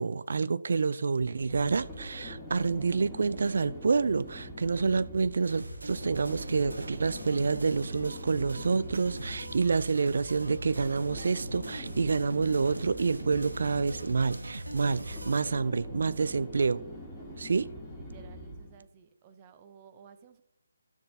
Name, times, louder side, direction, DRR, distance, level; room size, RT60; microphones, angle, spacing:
voice 1, 0.0-16.8 17.4-17.7, right 4 dB, 55° right, 0.4 m, -28 dB
sound 1, 1.2-18.8, equal, ahead, 2.0 m, -44 dB
sound 2, 5.4-15.4, right 1 dB, 75° right, 1.2 m, -41 dB
voice 2, 11.8-12.2 14.8-16.2 17.9-20.4, right 6 dB, 25° right, 0.8 m, -55 dB
13.0 x 6.7 x 2.7 m
figure-of-eight pair, 145°, 0 cm